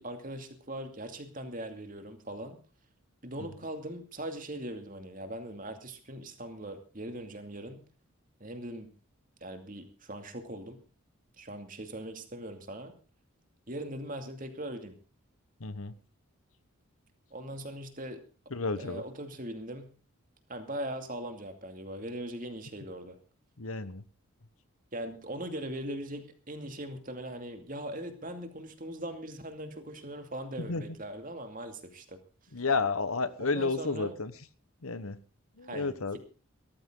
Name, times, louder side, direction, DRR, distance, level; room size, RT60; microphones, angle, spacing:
voice 1, 0.0-2.6 3.2-7.8 8.4-8.9 9.4-10.8 11.4-12.9 13.7-15.0 17.3-18.2 18.8-19.9 20.5-23.2 24.9-32.2 33.4-34.1 35.6-36.2, right 1 dB, 40° right, 6 dB, 2.5 m, -40 dB
voice 2, 15.6-15.9 18.5-19.0 23.6-24.0 30.6-30.9 32.5-34.3 34.8-35.2 35.6-36.2, left 4 dB, 75° left, 14 dB, 1.3 m, -31 dB
18.0 x 14.0 x 3.9 m, 0.36 s
head